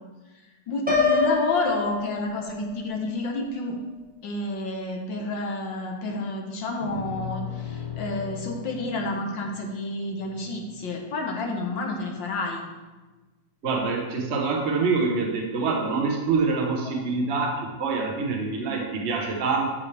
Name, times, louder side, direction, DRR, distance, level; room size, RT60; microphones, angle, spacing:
voice 1, 0.3-3.8 4.2-12.6, left 2 dB, 75° left, 1 dB, 1.7 m, -30 dB
Piano, 0.9-2.8, left 4 dB, 5° right, 1.0 m, -25 dB
sound 1, 6.8-11.2, left 7 dB, 55° left, 3.1 m, -38 dB
voice 2, 13.6-19.6, right 4 dB, 40° right, -1 dB, 1.2 m, -25 dB
13.0 x 5.0 x 3.3 m, 1.2 s
omnidirectional pair, 2.0 m